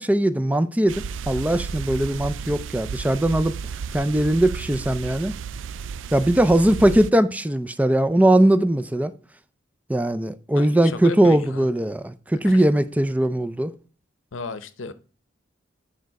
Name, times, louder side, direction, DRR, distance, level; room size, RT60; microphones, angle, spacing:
voice 1, 0.0-3.5 3.9-5.3 6.1-9.1 9.9-13.7, right 1 dB, 10° right, 0.4 m, -20 dB
sound 1, 0.9-7.1, right 6 dB, 75° right, 0.4 m, -33 dB
voice 2, 10.5-11.7 12.4-12.6 14.3-14.9, left 4 dB, 85° left, 0.8 m, -34 dB
8.9 x 5.0 x 4.7 m
head